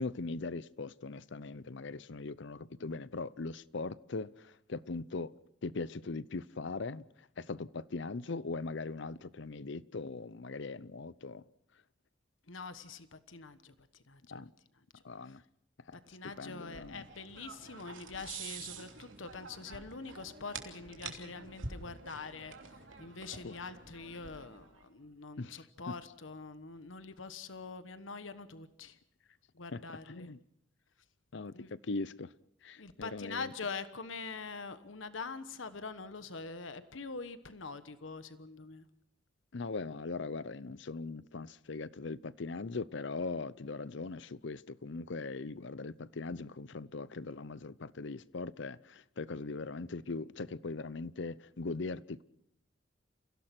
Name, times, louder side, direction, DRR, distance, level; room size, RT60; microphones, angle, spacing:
voice 1, 0.0-5.3 5.6-7.0 7.4-11.4 14.3-14.5 15.0-15.4 15.9-16.0 16.2-17.1 23.4-23.5 25.4-25.9 29.7-29.8 30.1-30.4 31.3-32.3 32.6-33.5 39.5-52.2, left 3 dB, 65° left, 0.7 m, -40 dB
voice 2, 12.5-13.7 14.1-14.5 15.2-15.3 16.1-22.5 23.0-29.0 29.5-30.3 31.5-31.7 32.8-38.8, left 4 dB, 85° left, 1.3 m, -44 dB
sound 1, 16.3-24.8, right 4 dB, 90° right, 3.0 m, -47 dB
29.5 x 16.5 x 6.0 m
head